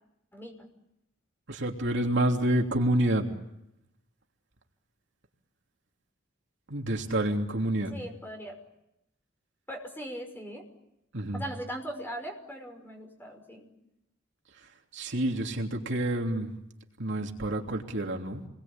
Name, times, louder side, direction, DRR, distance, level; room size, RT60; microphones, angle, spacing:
voice 1, 0.3-0.7 7.9-8.6 9.7-10.7 11.3-13.7, right 1 dB, 10° left, 3 dB, 5.7 m, -40 dB
voice 2, 1.5-3.2 6.7-7.9 11.1-11.4 14.9-16.5 17.0-18.4, right 1 dB, 65° right, 2 dB, 3.1 m, -28 dB
30.0 x 22.0 x 8.9 m, 0.85 s
head